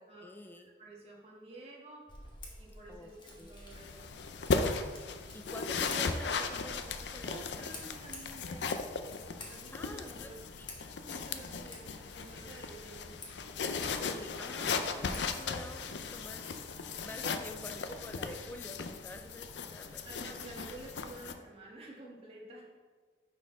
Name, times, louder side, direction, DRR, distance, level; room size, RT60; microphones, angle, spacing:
voice 1, 0.0-0.7 2.9-3.1 3.4-3.5 5.3-7.7 9.7-10.3 10.6-10.9 13.7-20.0, left 1 dB, 10° left, 5 dB, 0.3 m, -48 dB
voice 2, 0.8-2.1 2.6-4.1 7.3-8.7 9.5-10.4 11.0-13.1 20.0-22.7, right 2 dB, 35° right, -3 dB, 1.6 m, -50 dB
Scissors, 2.1-15.8, left 2 dB, 25° left, 1.3 m, -52 dB
sound 1, 3.7-21.3, left 4 dB, 75° left, 0.5 m, -37 dB
Bowed string instrument, 14.0-19.4, right 2 dB, 75° right, 0.8 m, -59 dB
10.5 x 4.3 x 3.7 m, 1.5 s
head